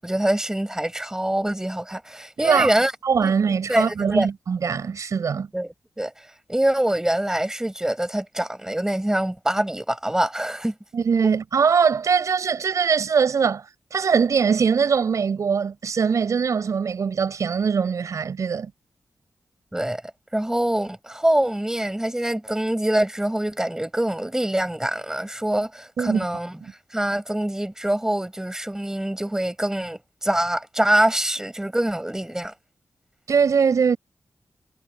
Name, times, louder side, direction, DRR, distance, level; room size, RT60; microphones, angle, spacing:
voice 1, 0.0-2.9 3.2-3.3 3.7-4.3 5.5-5.7 6.0-6.1 6.5-10.7 19.7-20.0 20.3-26.5 26.9-32.5, right 1 dB, 10° right, 7.1 m, -24 dB
voice 2, 2.4-2.7 3.0-5.5 10.9-18.7 26.0-26.3 26.6-26.7 33.3-34.0, right 6 dB, 75° right, 6.3 m, -22 dB
wide cardioid pair, 110°, 6 cm